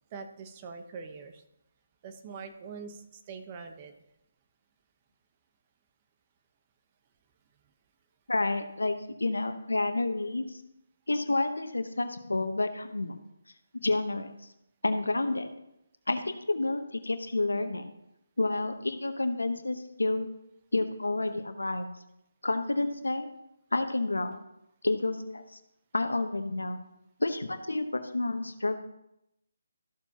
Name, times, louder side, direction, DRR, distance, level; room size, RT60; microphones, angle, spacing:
voice 1, 0.1-1.4 2.0-4.0, right 5 dB, 30° right, 6 dB, 1.0 m, -43 dB
voice 2, 8.3-10.6 11.1-13.2 13.8-14.3 14.8-15.5 16.1-17.9 18.4-20.3 20.7-21.9 22.4-23.3 23.7-24.4 24.8-25.4 25.9-26.8 27.2-28.8, left 2 dB, 85° left, 8 dB, 1.0 m, -29 dB
14.0 x 7.0 x 2.9 m, 0.83 s
figure-of-eight pair, 150°, 0 cm